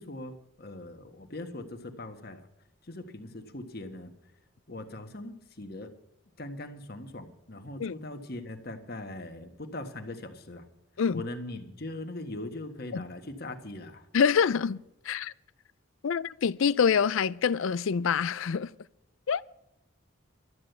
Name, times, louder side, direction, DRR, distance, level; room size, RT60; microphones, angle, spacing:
voice 1, 0.0-2.4 2.8-4.1 4.7-5.9 6.4-10.7 11.1-14.1, left 2 dB, 45° left, 1.5 m, -40 dB
voice 2, 14.1-15.3 16.0-18.7 19.3-19.4, left 6 dB, 65° left, 0.4 m, -26 dB
12.5 x 9.8 x 8.0 m
head